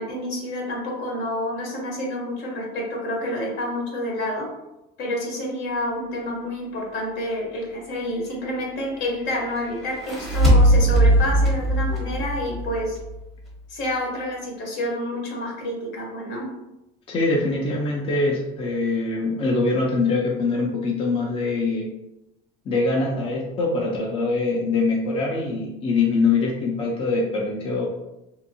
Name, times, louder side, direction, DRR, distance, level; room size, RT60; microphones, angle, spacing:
voice 1, 0.0-4.5 5.0-13.0 13.7-16.5, left 1 dB, 65° left, -1 dB, 1.0 m, -28 dB
sound 1, 9.8-13.2, right 1 dB, ahead, 0.8 m, -19 dB
voice 2, 17.1-21.9 22.7-27.9, left 3 dB, 30° left, -2 dB, 0.4 m, -23 dB
2.7 x 2.5 x 2.6 m, 0.93 s
cardioid pair, 125°, 20 cm